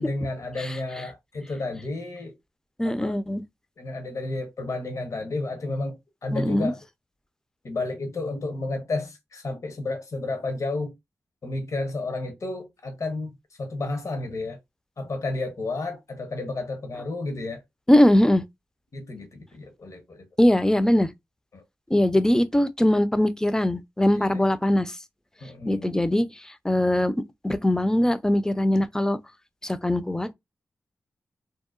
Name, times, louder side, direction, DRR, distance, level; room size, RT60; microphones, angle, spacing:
voice 1, 0.0-2.3 2.8-3.2 3.8-6.8 7.6-10.9 11.4-14.6 15.0-17.6 18.9-20.3 21.5-21.6 21.9-22.0 24.1-24.4 25.4-26.0, left 2 dB, 60° left, 0.9 m, -32 dB
voice 2, 2.8-3.4 6.3-6.7 17.9-18.4 20.4-21.1 21.9-25.0 25.7-27.1 27.4-29.2 29.6-30.3, left 1 dB, 10° left, 0.4 m, -21 dB
2.8 x 2.1 x 2.4 m
cardioid pair, 45°, 6 cm